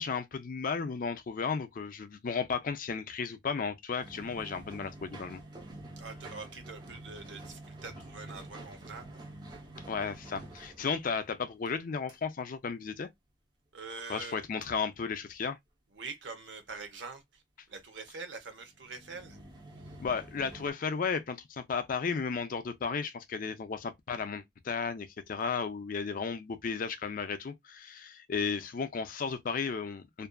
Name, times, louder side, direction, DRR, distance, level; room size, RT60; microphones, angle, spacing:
voice 1, 0.0-5.4 9.9-13.1 14.1-15.6 20.0-30.3, left 5 dB, 50° left, 0.4 m, -34 dB
sound 1, 4.0-11.8 12.1-12.2 18.6-20.7, right 1 dB, 25° right, 0.7 m, -48 dB
voice 2, 6.0-9.2 10.8-10.9 13.7-14.4 15.9-17.4 17.7-19.4, right 4 dB, 75° right, 0.8 m, -44 dB
2.5 x 2.3 x 2.2 m
head